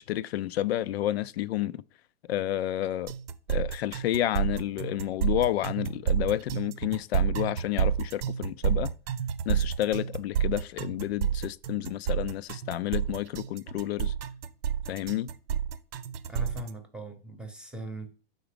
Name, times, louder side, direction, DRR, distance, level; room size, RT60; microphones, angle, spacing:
voice 1, 0.0-1.8 2.3-3.1 3.5-8.9 9.5-14.1 14.9-15.3, left 13 dB, 80° left, 0.5 m, -30 dB
sound 1, 3.1-16.7, right 8 dB, 70° right, 0.7 m, -29 dB
voice 2, 16.3-18.2, right 1 dB, 5° right, 0.8 m, -40 dB
5.9 x 4.0 x 5.0 m
hypercardioid pair, 145°, 30 cm